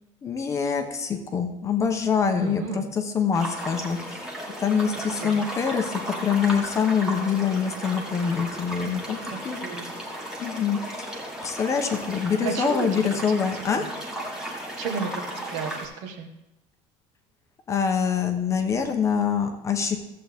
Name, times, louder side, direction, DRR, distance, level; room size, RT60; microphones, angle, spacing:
voice 1, 0.2-2.6 3.1-4.2 4.6-9.2 9.4-9.6 10.4-10.8 11.4-13.8 17.7-20.0, left 6 dB, 20° left, 5 dB, 0.7 m, -25 dB
voice 2, 2.3-2.9 4.9-5.4 9.4-9.9 12.4-12.9 13.3-13.9 14.8-16.3, right 6 dB, 60° right, 5 dB, 1.2 m, -33 dB
sound 1, 3.3-15.9, equal, 5° right, 1.4 m, -35 dB
14.0 x 7.7 x 3.5 m, 0.92 s
cardioid pair, 180°, 14 cm